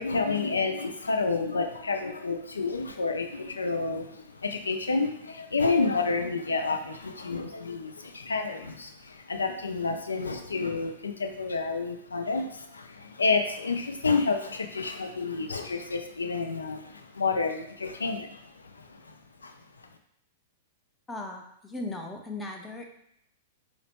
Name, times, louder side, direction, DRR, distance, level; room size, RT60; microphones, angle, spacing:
voice 1, 0.0-19.1 19.4-19.5, left 4 dB, 85° left, 5 dB, 0.4 m, -29 dB
voice 2, 21.1-22.9, left 2 dB, 10° left, 2 dB, 0.5 m, -37 dB
4.1 x 2.1 x 3.0 m, 0.72 s
hypercardioid pair, 105°, 0 cm